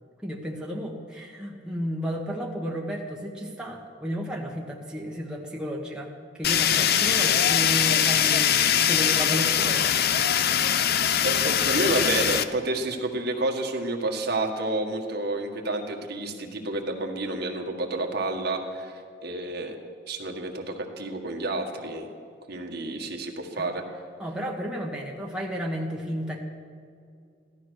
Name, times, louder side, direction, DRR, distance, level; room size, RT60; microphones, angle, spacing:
voice 1, 0.2-9.9 23.5-23.7 24.2-26.4, equal, 5° right, -2 dB, 1.4 m, -33 dB
Fire, 6.4-12.4, left 9 dB, 55° left, 0.6 m, -22 dB
voice 2, 11.2-18.9 19.2-19.8 20.1-22.1 22.5-23.8, right 2 dB, 60° right, 2 dB, 1.7 m, -29 dB
16.0 x 12.5 x 6.4 m, 2.4 s
head